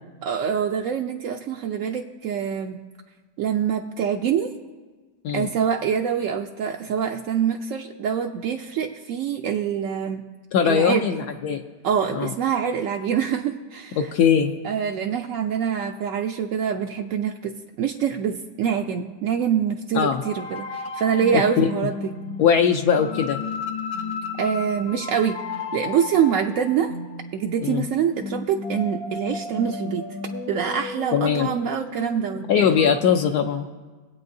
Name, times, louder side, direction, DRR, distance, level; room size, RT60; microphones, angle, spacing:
voice 1, 0.2-2.8 3.4-4.5 5.3-10.2 10.6-11.0 11.8-14.1 14.6-17.5 17.8-22.1 24.4-25.4 25.7-26.9 27.3-30.0 30.5-32.4, right 8 dB, 75° right, 2 dB, 0.7 m, -25 dB
voice 2, 10.5-11.6 12.1-12.3 14.0-14.5 19.9-20.2 21.3-21.7 22.4-23.4 27.6-27.9 31.1-31.5 32.5-33.7, left 7 dB, 75° left, 4 dB, 1.1 m, -20 dB
sound 1, 20.2-33.0, left 4 dB, 55° left, 0.8 m, -34 dB
23.0 x 8.4 x 2.7 m, 1.3 s
omnidirectional pair, 1.8 m